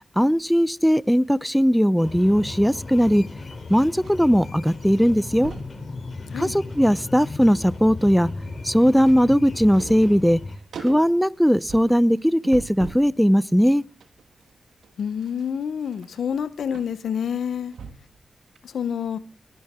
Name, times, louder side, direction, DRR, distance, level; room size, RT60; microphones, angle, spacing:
voice 1, 0.2-3.2 3.7-5.5 6.4-8.3 8.6-10.4 10.8-13.8, equal, ahead, 0.7 m, -19 dB
sound 1, 2.0-10.6, left 3 dB, 60° left, 3.4 m, -36 dB
sound 2, 2.0-4.1 4.4-4.7 5.0-5.8 6.3-7.0 7.3-13.1 13.6-18.2 18.6-18.7, right 6 dB, 85° right, 1.5 m, -43 dB
voice 2, 15.0-17.7 18.6-19.2, left 8 dB, 85° left, 0.9 m, -28 dB
21.0 x 10.5 x 3.7 m
cardioid pair, 45°, 0 cm